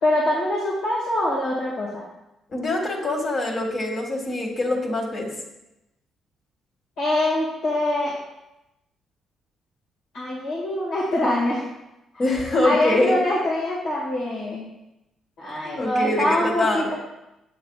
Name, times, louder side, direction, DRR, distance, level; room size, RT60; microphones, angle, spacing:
voice 1, 0.0-2.0 7.0-8.1 10.1-11.6 12.6-14.7 15.4-16.9, left 1 dB, 80° left, -6 dB, 1.9 m, -24 dB
voice 2, 2.5-5.3 12.2-13.3 15.6-16.9, left 2 dB, 50° left, 1 dB, 1.8 m, -24 dB
7.7 x 7.3 x 2.4 m, 0.93 s
cardioid pair, 90°, 0 cm